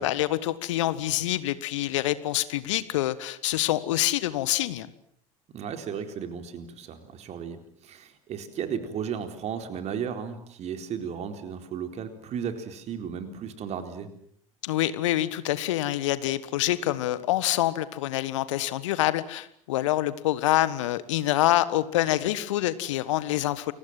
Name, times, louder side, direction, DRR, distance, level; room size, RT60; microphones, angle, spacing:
voice 1, 0.0-4.9 14.6-23.7, left 14 dB, 65° left, 16 dB, 1.5 m, -26 dB
voice 2, 5.5-14.1, right 7 dB, 40° right, 8 dB, 4.1 m, -35 dB
30.0 x 24.0 x 7.7 m, 0.67 s
figure-of-eight pair, 70°, 17 cm